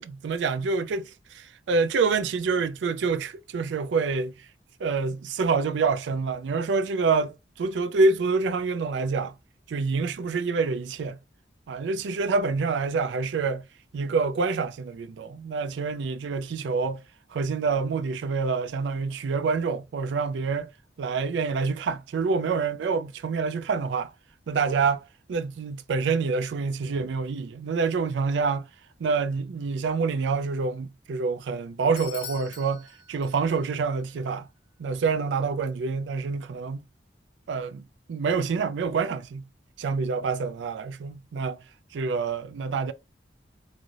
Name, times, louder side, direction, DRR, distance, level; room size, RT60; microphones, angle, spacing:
voice 1, 0.0-4.3 4.8-9.3 9.7-11.2 11.7-13.6 13.9-17.0 17.3-20.7 21.0-24.1 24.5-28.7 29.0-34.5 34.8-36.8 37.5-37.8 38.1-39.4 39.8-41.6 41.9-42.9, right 4 dB, 90° right, 0.4 m, -27 dB
Bell / Doorbell, 32.0-33.8, left 6 dB, 85° left, 1.1 m, -43 dB
3.2 x 2.6 x 2.4 m
head